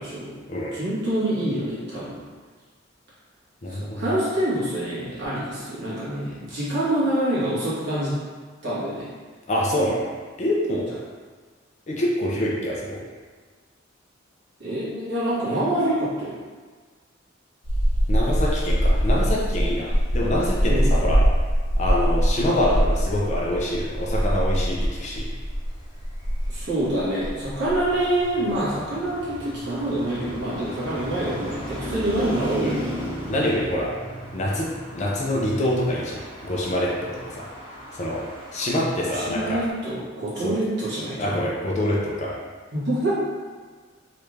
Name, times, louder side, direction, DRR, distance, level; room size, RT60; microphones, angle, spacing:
voice 1, 0.0-0.3 0.7-2.2 3.8-8.2 8.6-9.1 14.6-16.3 20.7-21.1 26.5-32.9 39.0-41.4 42.7-43.1, right 1 dB, 60° right, -9 dB, 1.3 m, -26 dB
voice 2, 3.6-4.1 9.5-10.1 10.4-10.9 11.9-13.0 18.1-21.2 21.8-25.3 32.6-32.8 33.3-33.9 34.3-37.5 37.9-39.6 40.4-40.5 41.2-42.3, left 1 dB, 35° left, -4 dB, 0.5 m, -25 dB
sound 1, 17.6-32.4, equal, 60° left, 0.9 m, -24 dB
Traffic noise roadway noise, 26.0-39.7, equal, 25° right, 1.0 m, -37 dB
3.3 x 2.5 x 3.2 m, 1.5 s
head